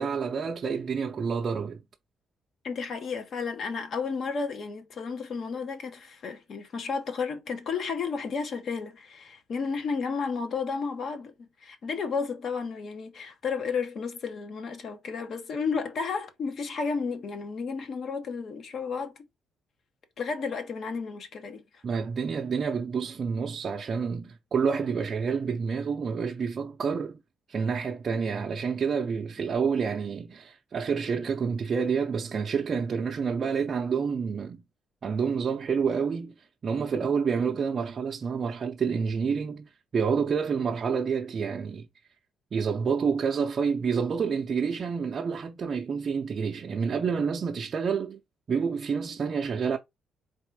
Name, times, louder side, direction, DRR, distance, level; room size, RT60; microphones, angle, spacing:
voice 1, 0.0-1.8 21.8-27.2 27.5-34.6 35.0-41.9 42.5-48.2 48.5-49.8, right 6 dB, 50° right, 0.5 m, -28 dB
voice 2, 2.6-19.1 20.2-21.8, left 5 dB, 60° left, 1.1 m, -32 dB
4.0 x 2.5 x 4.6 m
cardioid pair, 90°, 0 cm